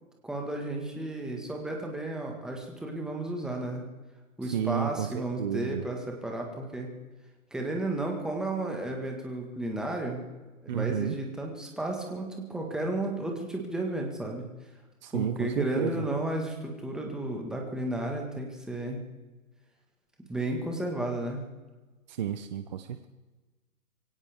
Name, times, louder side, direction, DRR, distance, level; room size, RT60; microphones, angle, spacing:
voice 1, 0.2-3.8 4.4-6.9 7.5-10.2 10.6-14.4 15.1-19.0 20.3-21.4, right 1 dB, ahead, 1 dB, 1.6 m, -33 dB
voice 2, 4.4-5.8 10.7-11.2 15.0-16.1 22.1-23.1, right 9 dB, 30° right, 9 dB, 0.7 m, -32 dB
23.5 x 17.5 x 3.6 m, 1.2 s
hypercardioid pair, 150°, 43 cm